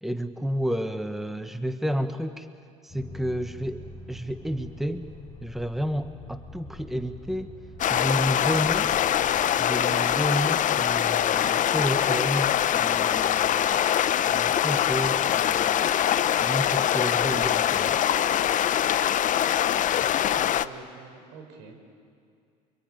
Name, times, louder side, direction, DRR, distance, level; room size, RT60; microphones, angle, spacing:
voice 1, 0.0-2.5 2.8-5.1 5.4-7.5 7.9-9.0 9.6-13.8 14.2-15.9 16.4-18.0, equal, ahead, 9 dB, 1.2 m, -31 dB
sound 1, 2.9-9.4, left 2 dB, 25° left, 4.5 m, -45 dB
sound 2, 7.8-20.6, left 10 dB, 45° left, 0.8 m, -23 dB
voice 2, 20.3-21.8, right 4 dB, 70° right, 4 dB, 5.2 m, -46 dB
25.0 x 23.5 x 9.2 m, 2.3 s
supercardioid pair, 80°, 18 cm